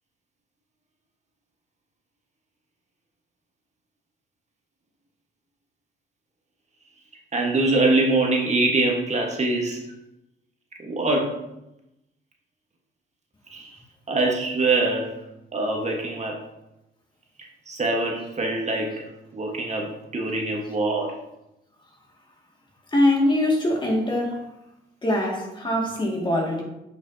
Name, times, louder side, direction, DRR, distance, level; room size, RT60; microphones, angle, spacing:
voice 1, 7.3-9.8 10.8-11.3 13.5-13.8 14.1-15.1 15.5-16.4 17.7-19.1 19.3-21.2, right 2 dB, 35° right, 0 dB, 1.4 m, -24 dB
voice 2, 22.9-24.5 25.0-26.6, left 1 dB, 25° left, -1 dB, 2.1 m, -22 dB
8.6 x 6.0 x 2.8 m, 0.87 s
cardioid pair, 90°, 20 cm